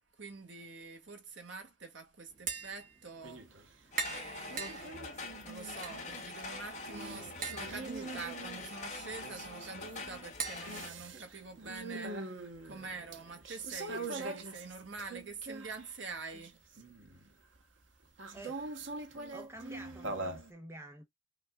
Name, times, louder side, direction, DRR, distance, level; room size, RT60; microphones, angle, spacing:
voice 1, 0.2-3.4 4.1-4.9 5.4-16.6, right 4 dB, 70° right, 1.9 m, -46 dB
Tap, 2.3-11.8, right 5 dB, 45° right, 1.8 m, -45 dB
sound 1, 3.2-3.7 4.0-16.0 16.3-17.3 18.2-20.5, right 2 dB, 85° right, 1.2 m, -44 dB
sound 2, 3.9-10.9, left 3 dB, 40° left, 1.9 m, -45 dB
voice 2, 19.3-21.0, right 1 dB, 15° right, 1.0 m, -48 dB
5.8 x 3.9 x 2.4 m
head